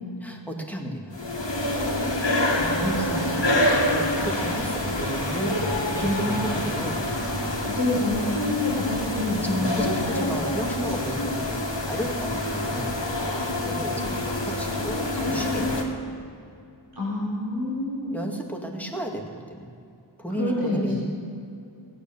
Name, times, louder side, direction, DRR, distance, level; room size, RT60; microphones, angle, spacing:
voice 1, 0.2-1.3 1.7-1.9 2.5-7.0 9.4-11.6 11.9-13.0 13.6-15.9 18.1-19.7 20.2-21.0, right 1 dB, 5° left, 0 dB, 2.1 m, -33 dB
sound 1, 1.1-15.8, left 1 dB, 75° left, 2.1 m, -26 dB
voice 2, 6.2-6.5 7.1-7.3 7.6-9.9 10.2-10.3 16.9-18.1 20.3-20.9, left 2 dB, 60° right, -9 dB, 4.1 m, -27 dB
16.5 x 9.6 x 6.9 m, 2.5 s
wide cardioid pair, 40°, 44 cm